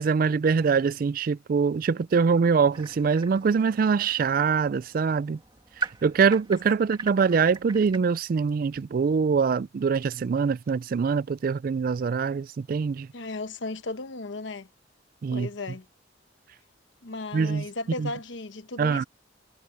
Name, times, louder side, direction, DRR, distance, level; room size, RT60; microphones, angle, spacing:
voice 1, 0.0-5.4 5.8-13.1 15.2-15.5 17.3-17.7 18.0-18.1 18.8-19.0, right 5 dB, 50° right, 0.3 m, -24 dB
sound 1, 2.7-8.0, right 4 dB, 25° right, 2.0 m, -40 dB
voice 2, 13.1-14.7 15.3-15.9 17.0-19.0, left 2 dB, 80° left, 1.0 m, -35 dB
head